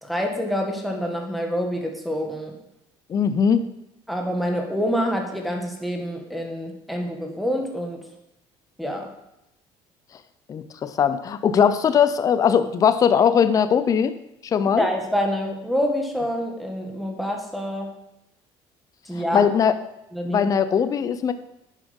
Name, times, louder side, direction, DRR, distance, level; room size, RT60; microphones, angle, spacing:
voice 1, 0.0-2.5 4.1-8.0 8.8-9.1 14.8-17.9 19.1-19.5 20.1-20.5, equal, ahead, 2 dB, 1.8 m, -27 dB
voice 2, 3.1-3.7 10.5-14.1 14.4-14.9 19.2-19.7 20.2-21.3, left 7 dB, 35° left, 12 dB, 0.6 m, -20 dB
10.0 x 7.5 x 5.4 m, 0.85 s
cardioid pair, 135°, 11 cm